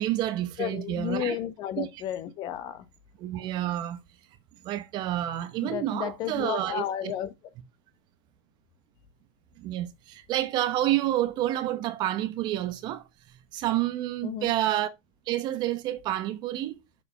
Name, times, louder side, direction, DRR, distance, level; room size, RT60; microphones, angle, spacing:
voice 1, 0.0-1.4 1.8-1.9 3.2-4.0 4.6-7.1 9.6-13.0 13.5-14.9 15.3-16.8, right 13 dB, 30° right, 0.9 m, -29 dB
voice 2, 0.6-2.8 5.6-7.3 14.2-14.5, left 10 dB, 30° left, 1.0 m, -32 dB
6.9 x 5.0 x 5.8 m
hypercardioid pair, 140°, 15 cm